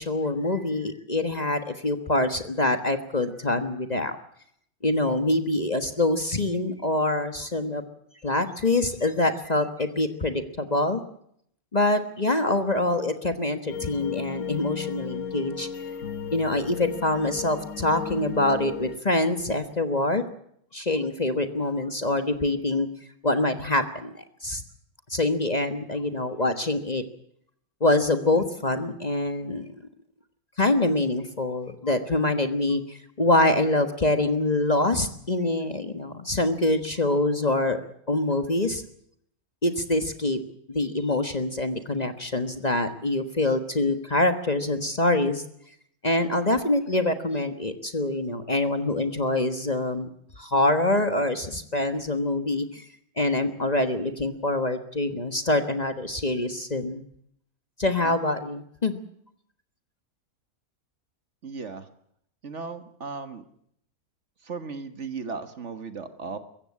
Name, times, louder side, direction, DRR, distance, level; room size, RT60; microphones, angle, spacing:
voice 1, 0.0-4.2 4.8-7.8 8.2-11.0 11.7-15.7 16.3-20.2 20.7-22.9 23.2-24.6 25.1-27.0 27.8-29.7 30.6-37.8 38.1-38.8 39.6-40.4 40.7-45.4 46.0-50.1 50.4-52.9 53.2-57.0 57.8-59.0, left 2 dB, 30° left, 8 dB, 1.4 m, -25 dB
sound 1, 13.7-19.0, left 7 dB, 60° left, 1.7 m, -35 dB
voice 2, 61.4-61.9 62.4-63.4 64.4-66.4, right 4 dB, 55° right, 9 dB, 1.7 m, -36 dB
23.5 x 15.0 x 9.7 m, 0.71 s
omnidirectional pair, 1.5 m